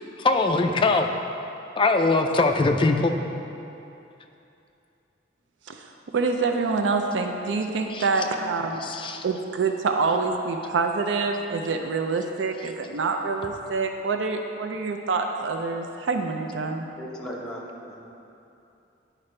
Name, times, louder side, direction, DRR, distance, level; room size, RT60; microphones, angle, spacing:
voice 1, 0.2-1.1 1.8-3.1 7.9-8.1 8.8-9.2, left 3 dB, 25° left, 4 dB, 0.4 m, -21 dB
voice 2, 5.7-8.9 9.2-16.9, right 4 dB, 80° right, 4 dB, 0.4 m, -26 dB
voice 3, 17.0-18.0, equal, 5° left, -4 dB, 0.9 m, -37 dB
10.5 x 4.9 x 3.2 m, 2.8 s
head